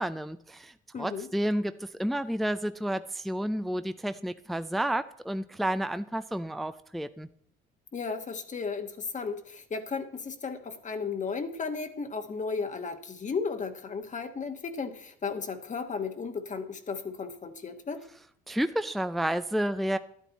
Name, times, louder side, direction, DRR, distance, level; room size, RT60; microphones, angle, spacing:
voice 1, 0.0-7.3 18.5-20.0, right 1 dB, ahead, 11 dB, 0.5 m, -31 dB
voice 2, 0.9-1.3 7.9-18.0, left 5 dB, 35° left, 7 dB, 1.3 m, -34 dB
11.5 x 9.3 x 4.1 m, 0.64 s
supercardioid pair, 80°, 21 cm